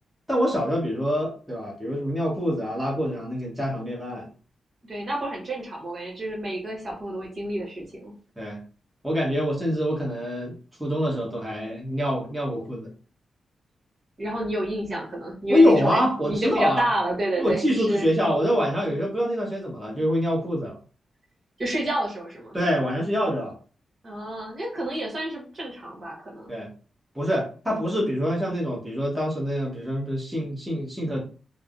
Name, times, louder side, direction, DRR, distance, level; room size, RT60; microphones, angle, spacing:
voice 1, 0.3-4.3 8.4-8.6 9.0-10.5 10.8-12.9 15.5-16.9 17.4-20.8 22.5-23.5 26.5-26.7 27.1-31.2, equal, 5° right, -4 dB, 1.0 m, -25 dB
voice 2, 4.8-8.1 14.2-18.1 21.6-22.6 24.0-26.5, right 1 dB, 45° right, -2 dB, 1.3 m, -29 dB
3.2 x 2.1 x 2.5 m, 0.39 s
cardioid pair, 70°, 0 cm